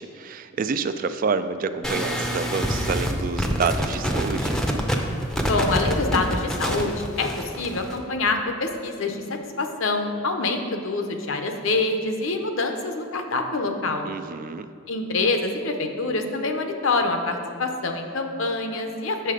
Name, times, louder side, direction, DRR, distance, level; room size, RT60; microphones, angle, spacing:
voice 1, 0.0-4.6 14.1-14.7, right 5 dB, 40° right, 11 dB, 0.3 m, -28 dB
sound 1, 1.8-8.0, equal, 5° left, 0.6 m, -26 dB
voice 2, 5.4-9.2 9.6-14.1 14.9-19.3, left 3 dB, 75° left, 5 dB, 0.8 m, -26 dB
7.8 x 6.6 x 5.0 m, 2.5 s
head